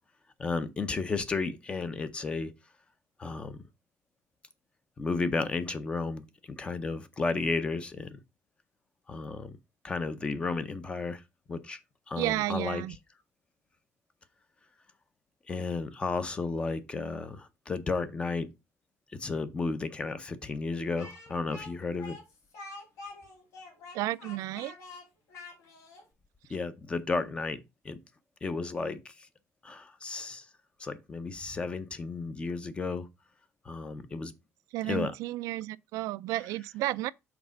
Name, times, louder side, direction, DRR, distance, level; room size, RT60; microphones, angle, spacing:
voice 1, 0.4-2.5 3.2-3.6 5.0-6.2 6.5-8.2 9.1-9.5 9.8-11.2 11.5-11.8 12.1-12.8 15.5-18.5 19.2-22.2 26.5-27.6 27.8-28.0 28.4-29.0 29.6-30.4 30.8-33.1 33.7-34.3 34.8-35.1, left 4 dB, 20° left, 0.6 m, -33 dB
voice 2, 12.2-13.0 23.9-24.8 34.7-37.1, right 17 dB, 90° right, 0.3 m, -32 dB
Speech, 21.0-26.1, left 3 dB, 70° left, 2.9 m, -46 dB
5.9 x 4.3 x 5.1 m
cardioid pair, 170°, 6 cm